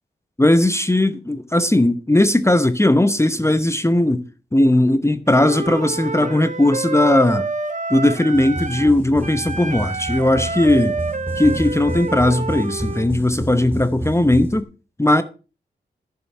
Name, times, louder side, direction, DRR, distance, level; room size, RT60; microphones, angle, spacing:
voice 1, 0.4-7.5 7.9-11.0 11.4-14.7 15.0-15.2, left 1 dB, 15° left, 0.8 m, -17 dB
Wind instrument woodwind instrument, 5.3-8.9 9.2-13.1, right 3 dB, 40° right, 1.1 m, -28 dB
sound 1, 8.3-14.6, right 1 dB, 10° right, 2.0 m, -30 dB
10.5 x 6.8 x 5.3 m
cardioid pair, 55°, 19 cm